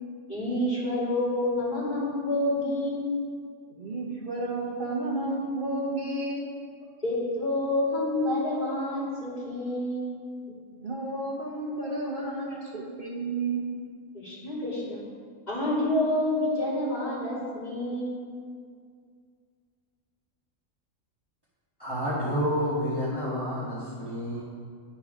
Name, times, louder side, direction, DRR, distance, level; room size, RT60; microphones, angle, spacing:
voice 1, 0.3-3.1 7.0-10.0 11.9-12.0 12.5-12.6 14.2-15.0 15.5-18.2, left 1 dB, 35° left, -8 dB, 2.5 m, -28 dB
voice 2, 3.7-6.4 10.5-13.7, right 2 dB, 50° right, -3 dB, 1.0 m, -32 dB
voice 3, 21.8-24.4, equal, 20° left, -9 dB, 1.4 m, -29 dB
10.5 x 4.3 x 5.0 m, 2.1 s
omnidirectional pair, 1.3 m